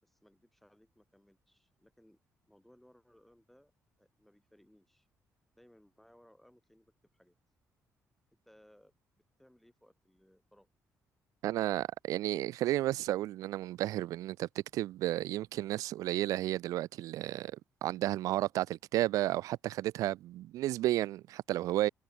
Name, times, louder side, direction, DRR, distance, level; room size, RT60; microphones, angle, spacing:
voice 1, 0.0-2.2 2.5-3.7 4.0-5.1 5.5-7.4 8.5-8.9 9.4-10.7, equal, 5° left, 5.5 m, -64 dB
voice 2, 11.4-21.9, right 15 dB, 85° right, 0.4 m, -32 dB
cardioid pair, 105°, 6 cm